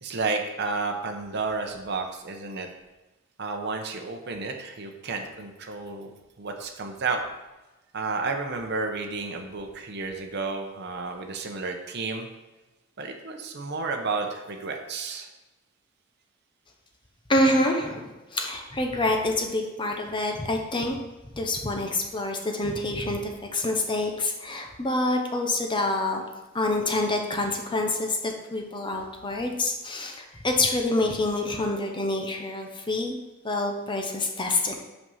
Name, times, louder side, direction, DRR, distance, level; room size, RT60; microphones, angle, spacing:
voice 1, 0.0-2.7 3.4-7.2 7.9-12.3 13.0-15.3, right 4 dB, 55° right, 3 dB, 0.8 m, -31 dB
voice 2, 17.3-21.0 21.3-26.2 26.5-33.2 33.4-34.7, left 2 dB, 25° left, 3 dB, 0.8 m, -27 dB
5.8 x 5.4 x 5.5 m, 1.1 s
head